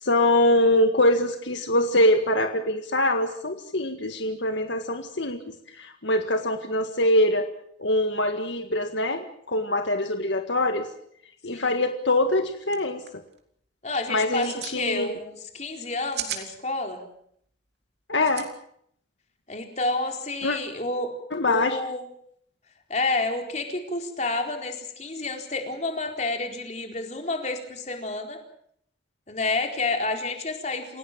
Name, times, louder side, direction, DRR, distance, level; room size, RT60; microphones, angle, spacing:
voice 1, 0.0-5.4 5.7-7.5 7.8-10.9 11.4-13.0 14.1-15.1 18.1-18.5 20.4-20.6 21.3-21.8, left 1 dB, 75° left, 6 dB, 1.8 m, -23 dB
sound 1, 12.3-12.4 12.6-12.8 13.1-13.4 14.2-14.8 15.8-16.5 18.2-18.5, right 9 dB, 60° right, 3.3 m, -34 dB
voice 2, 13.8-17.0 19.5-21.1 21.5-22.1 22.9-28.4 29.3-31.0, left 2 dB, 35° left, 3 dB, 4.2 m, -29 dB
29.0 x 17.0 x 7.4 m, 0.68 s
head